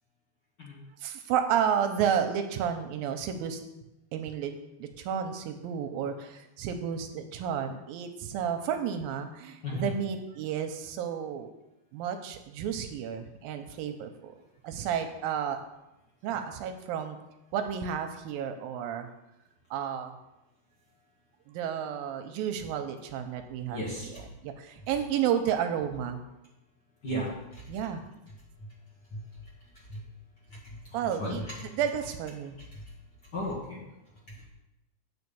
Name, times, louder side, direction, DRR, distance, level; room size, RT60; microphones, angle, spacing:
voice 1, 1.0-3.6 4.1-11.5 11.9-14.3 14.6-15.6 16.2-17.2 17.5-19.1 19.7-20.1 21.5-23.8 24.4-26.2 27.7-28.0 30.9-31.4 31.7-32.6, right 8 dB, 80° right, 7 dB, 2.2 m, -31 dB
voice 2, 23.7-24.2 27.0-27.6 28.6-28.7 29.1-29.2 29.9-30.0 30.5-31.5 32.6-32.8 33.3-33.8, equal, 45° left, -5 dB, 1.4 m, -36 dB
8.7 x 4.7 x 6.8 m, 0.94 s
omnidirectional pair, 4.5 m